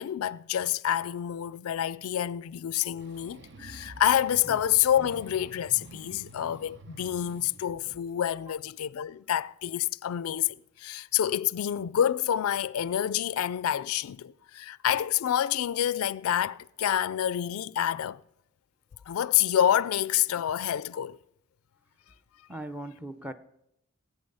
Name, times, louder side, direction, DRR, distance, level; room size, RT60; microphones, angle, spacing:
voice 1, 0.0-18.2 19.1-21.2, left 10 dB, 85° left, 0.4 m, -28 dB
sound 1, 2.9-8.0, right 2 dB, 60° right, 0.8 m, -49 dB
voice 2, 22.5-23.3, right 1 dB, 5° right, 0.6 m, -39 dB
17.5 x 8.4 x 5.4 m
head